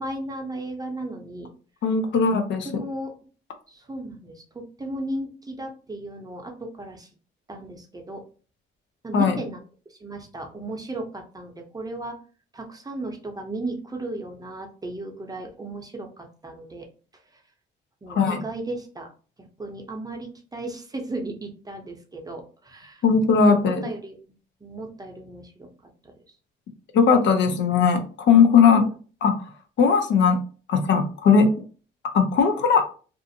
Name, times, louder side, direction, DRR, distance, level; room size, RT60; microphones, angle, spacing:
voice 1, 0.0-1.5 2.6-3.1 3.7-7.1 7.5-8.2 9.0-9.6 9.9-12.2 12.5-16.9 18.0-19.1 19.4-23.0 23.5-24.3 24.6-25.7 26.0-26.2 28.7-28.9, right 2 dB, 20° right, 2 dB, 0.6 m, -35 dB
voice 2, 1.8-2.8 9.1-9.4 18.1-18.4 23.0-23.9 26.9-28.9 29.2-29.3 29.8-30.4 30.7-31.5 32.1-32.8, left 5 dB, 70° left, 7 dB, 0.5 m, -18 dB
2.4 x 2.4 x 2.7 m, 0.38 s
cardioid pair, 90°, 20 cm